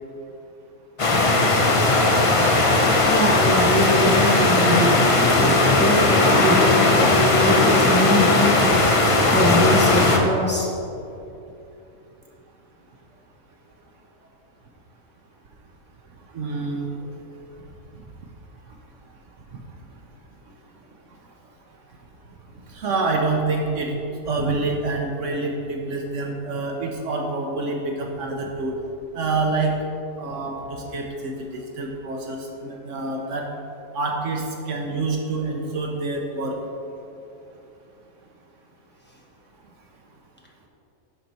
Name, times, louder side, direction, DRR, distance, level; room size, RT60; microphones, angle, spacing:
sound 1, 1.0-10.2, left 2 dB, 35° left, 0.5 m, -18 dB
voice 1, 3.1-8.8 9.3-10.7, left 1 dB, 10° left, -3 dB, 1.0 m, -23 dB
voice 2, 16.3-16.9 17.9-18.0 19.5-19.6 22.7-24.0 24.2-28.8 29.1-29.8 30.2-33.5 33.9-36.6, right 3 dB, 65° right, 1 dB, 1.1 m, -27 dB
11.5 x 4.0 x 4.5 m, 2.8 s
omnidirectional pair, 1.5 m